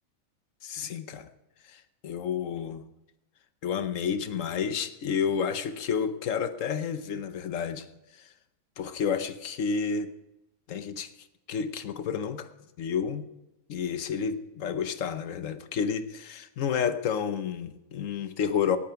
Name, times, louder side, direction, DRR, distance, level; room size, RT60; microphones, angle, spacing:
voice 1, 0.6-1.3 1.7-2.8 3.6-7.9 8.8-10.1 10.7-11.1 11.5-12.5 12.8-13.3 13.7-18.8, left 7 dB, 65° left, 11 dB, 1.2 m, -30 dB
17.5 x 8.6 x 5.7 m, 0.95 s
omnidirectional pair, 1.5 m